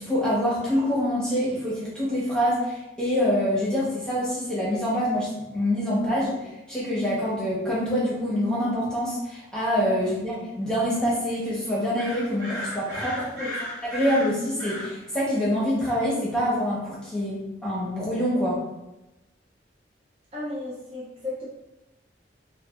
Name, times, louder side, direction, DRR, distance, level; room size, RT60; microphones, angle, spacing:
voice 1, 0.0-6.4 6.7-13.2 13.9-18.6, equal, 5° left, -8 dB, 0.9 m, -25 dB
sound 1, 12.0-14.9, left 1 dB, 70° right, 1.0 m, -35 dB
voice 2, 13.1-13.7 20.3-21.4, left 2 dB, 30° right, -7 dB, 0.5 m, -35 dB
3.2 x 2.3 x 2.4 m, 0.97 s
head